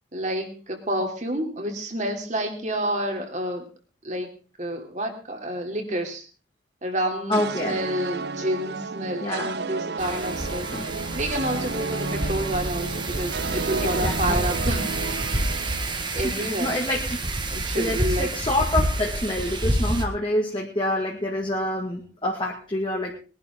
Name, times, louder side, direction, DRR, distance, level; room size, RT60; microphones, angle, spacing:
voice 1, 0.1-3.6 4.0-4.3 4.6-6.3 6.8-14.9 16.1-16.7 17.5-18.3, right 1 dB, 40° right, 3 dB, 3.0 m, -29 dB
voice 2, 7.3-7.8 9.2-9.5 10.7-10.9 13.8-14.5 16.0-17.2 17.8-23.2, left 1 dB, 25° left, -1 dB, 2.1 m, -27 dB
sound 1, 7.3-16.6, right 4 dB, 65° right, 0.7 m, -32 dB
Wind, 10.0-20.0, right 1 dB, 25° right, 1.5 m, -28 dB
21.5 x 11.5 x 3.7 m, 0.36 s
head